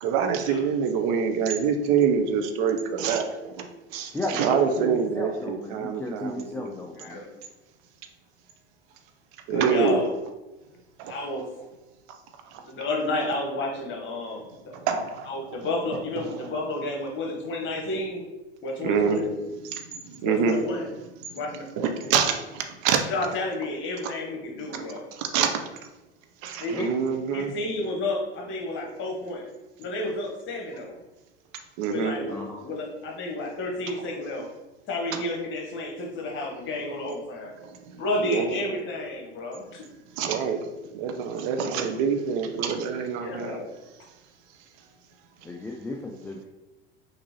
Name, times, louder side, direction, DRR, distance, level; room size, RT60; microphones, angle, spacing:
voice 1, 0.0-3.6 3.9-6.7 9.5-10.0 11.1-11.2 14.9-15.3 16.3-16.4 18.8-19.2 19.7-19.8 20.2-20.6 21.8-23.0 24.7-24.8 25.2-25.6 26.4-27.5 31.8-32.2 38.3-38.6 40.2-40.6 40.9-43.6, right 6 dB, 50° right, 5 dB, 0.7 m, -25 dB
voice 2, 4.1-7.2 26.7-26.9 32.3-32.6 45.4-46.4, left 2 dB, 5° left, 0 dB, 0.3 m, -35 dB
voice 3, 7.0-7.3 9.5-10.1 11.1-11.5 12.6-14.7 15.3-18.3 18.6-19.4 20.2-20.9 21.3-21.7 23.1-25.1 26.6-26.9 27.3-29.5 29.8-31.0 31.9-34.5 34.9-37.5 37.9-39.8 43.2-43.8, left 2 dB, 35° left, 1 dB, 1.2 m, -31 dB
5.9 x 2.7 x 3.0 m, 1.1 s
figure-of-eight pair, 75°, 32 cm